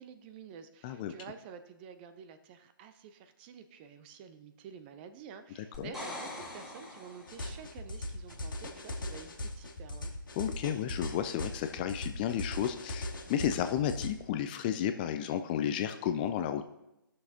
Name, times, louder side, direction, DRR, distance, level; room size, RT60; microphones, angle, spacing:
voice 1, 0.0-10.1, right 7 dB, 25° right, 9 dB, 0.6 m, -50 dB
voice 2, 0.8-1.1 5.8-5.9 10.3-16.6, left 9 dB, 25° left, 8 dB, 0.4 m, -32 dB
sound 1, 5.7-7.7 11.4-11.5, left 1 dB, 5° right, 1.7 m, -43 dB
sound 2, 6.4-6.6 7.5-7.6 8.3-8.5 9.5-9.7 10.7-11.1 12.3-12.6 13.5-13.8, right 1 dB, 65° right, 3.5 m, -55 dB
sound 3, 7.3-14.1, left 1 dB, 65° left, 1.6 m, -39 dB
16.0 x 6.4 x 2.8 m, 0.89 s
figure-of-eight pair, 135°, 12 cm